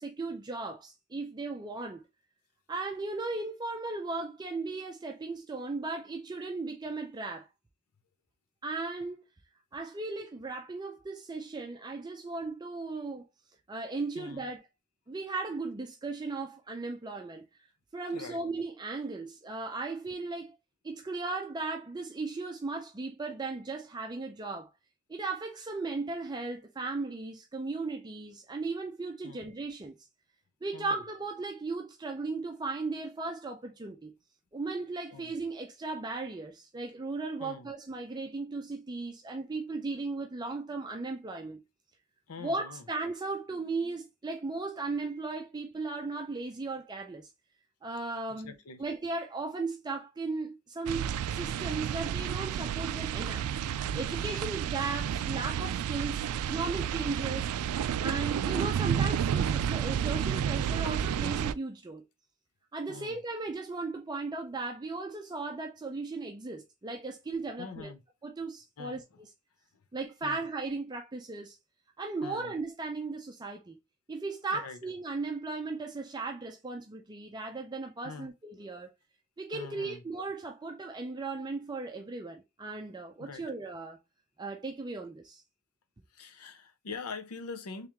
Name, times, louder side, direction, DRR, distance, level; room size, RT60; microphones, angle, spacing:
voice 1, 0.0-2.0 2.7-7.5 8.6-9.2 9.7-13.3 13.7-14.6 15.1-17.5 17.9-20.6 20.8-24.7 25.1-30.0 30.6-34.1 34.5-41.6 42.4-47.3 47.8-53.5 53.9-57.5 58.0-62.0 62.7-67.9 68.2-69.3 69.9-71.6 72.0-73.8 74.1-78.9 79.4-84.0 84.4-85.4, right 3 dB, 20° right, 0.5 m, -36 dB
voice 2, 18.1-18.4 29.2-29.5 30.7-31.0 35.1-35.3 37.4-37.7 42.3-42.9 48.3-48.8 62.9-63.2 67.6-68.0 68.8-69.0 70.2-70.4 72.2-72.6 74.5-74.8 78.0-78.3 79.5-80.0 83.2-83.4 86.1-87.9, left 4 dB, 85° left, 0.6 m, -44 dB
sound 1, 50.9-61.5, right 8 dB, 80° right, 0.3 m, -31 dB
3.6 x 3.2 x 2.9 m
head